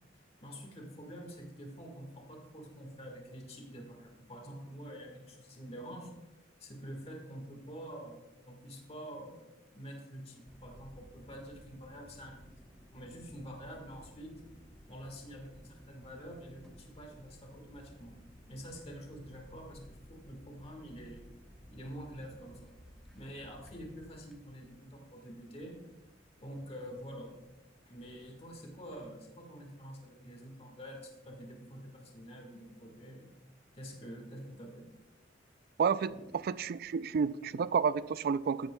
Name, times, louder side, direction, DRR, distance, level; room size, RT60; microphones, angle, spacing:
voice 1, 0.4-6.1 6.6-8.2 8.5-12.6 12.9-14.3 14.9-18.1 18.5-21.2 21.7-22.7 23.1-25.8 26.4-27.3 27.9-33.3 33.7-34.9 36.1-36.2 37.0-37.1, equal, 35° left, 2 dB, 1.5 m, -47 dB
sound 1, 10.5-29.0, equal, ahead, 1.0 m, -57 dB
voice 2, 35.8-36.1 36.4-38.7, right 6 dB, 50° right, 17 dB, 0.3 m, -30 dB
13.0 x 10.5 x 2.2 m, 1.0 s
head